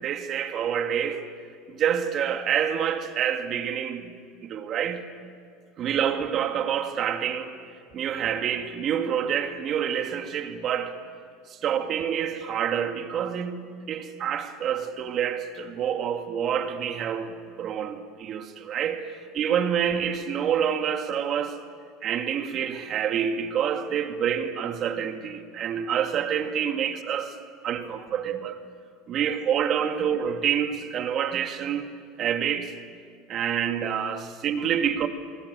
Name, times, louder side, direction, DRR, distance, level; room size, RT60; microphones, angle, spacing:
voice 1, 0.0-1.3 1.7-4.1 4.4-5.0 5.8-7.6 7.9-11.0 11.6-13.6 13.9-21.6 22.0-27.3 27.6-28.6 29.1-32.7 33.3-35.1, right 8 dB, 45° right, 2.2 m, -27 dB
27.0 x 21.0 x 7.0 m
hypercardioid pair, 95°, 0 cm